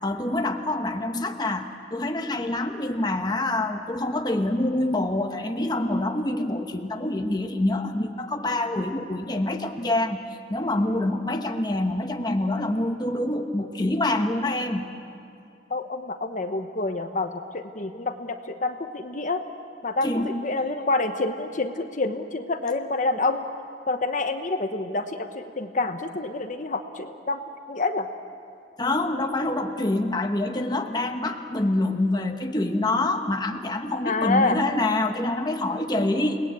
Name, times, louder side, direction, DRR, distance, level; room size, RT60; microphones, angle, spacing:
voice 1, 0.0-10.2 10.5-14.9 20.0-20.3 28.8-36.4, left 2 dB, 20° left, 5 dB, 1.1 m, -26 dB
voice 2, 15.7-19.4 19.8-23.4 23.9-27.4 27.7-28.1 34.0-34.6, left 3 dB, 45° left, 7 dB, 1.0 m, -27 dB
29.0 x 19.5 x 8.4 m, 2.5 s
head